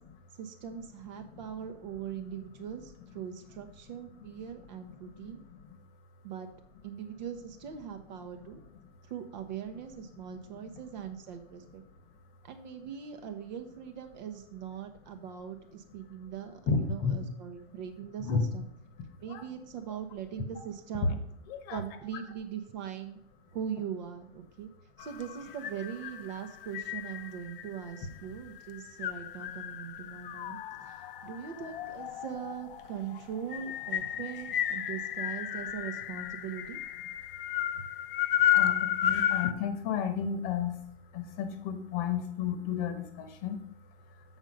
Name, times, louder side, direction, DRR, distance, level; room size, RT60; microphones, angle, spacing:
voice 1, 0.3-5.4 6.2-6.5 6.8-8.6 9.0-11.8 12.4-18.7 19.2-21.2 21.7-23.2 23.5-24.7 25.0-36.8, right 8 dB, 45° right, 7 dB, 0.9 m, -41 dB
voice 2, 16.7-17.2 18.2-18.5 19.3-19.4 21.0-21.1 21.5-21.8 38.5-40.8 41.1-43.6, left 6 dB, 30° left, 8 dB, 1.1 m, -32 dB
sound 1, 25.0-39.5, left 11 dB, 55° left, 0.7 m, -33 dB
6.6 x 6.3 x 5.3 m, 0.69 s
hypercardioid pair, 145°, 32 cm